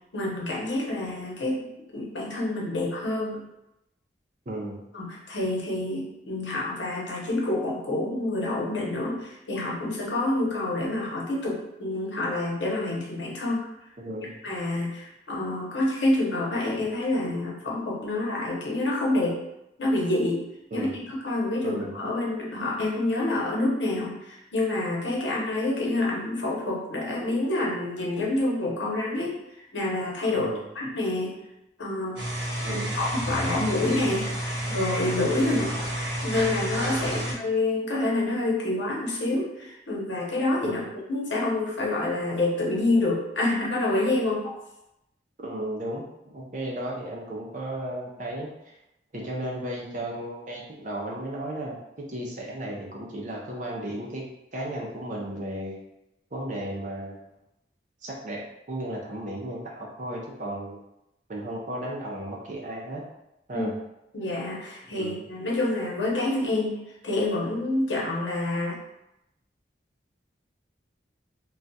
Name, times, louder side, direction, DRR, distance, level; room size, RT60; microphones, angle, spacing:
voice 1, 0.1-3.4 4.9-13.7 14.4-19.4 19.8-20.4 20.7-29.4 29.7-30.5 30.7-31.4 31.8-32.2 32.6-34.3 34.7-35.7 36.2-40.8 41.1-44.6 63.5-63.7 64.1-68.8, left 2 dB, 85° left, -4 dB, 0.9 m, -27 dB
voice 2, 4.5-4.8 14.0-14.3 20.7-21.0 21.6-22.0 30.3-30.6 32.6-33.0 35.5-35.8 37.0-37.3 40.6-40.8 45.4-48.8 49.1-54.2 54.5-55.8 56.3-57.3 58.0-58.4 58.7-60.8 61.3-63.0 63.5-63.8 65.0-65.3, right 1 dB, 45° right, -2 dB, 0.5 m, -34 dB
sound 1, 32.2-37.3, equal, 70° right, 0.9 m, -30 dB
2.3 x 2.3 x 3.9 m, 0.87 s
head